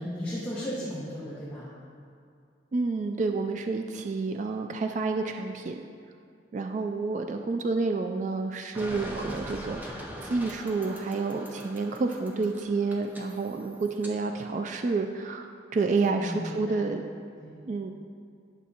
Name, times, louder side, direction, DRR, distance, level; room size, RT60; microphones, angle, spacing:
voice 1, 0.0-1.7 15.9-16.8 17.4-17.6, equal, 10° left, -10 dB, 1.3 m, -35 dB
voice 2, 2.7-5.8 6.5-17.0 17.7-17.9, right 3 dB, 45° right, 5 dB, 0.3 m, -29 dB
sound 1, 8.8-14.1, equal, 10° right, 0.6 m, -41 dB
11.0 x 6.2 x 2.8 m, 2.3 s
head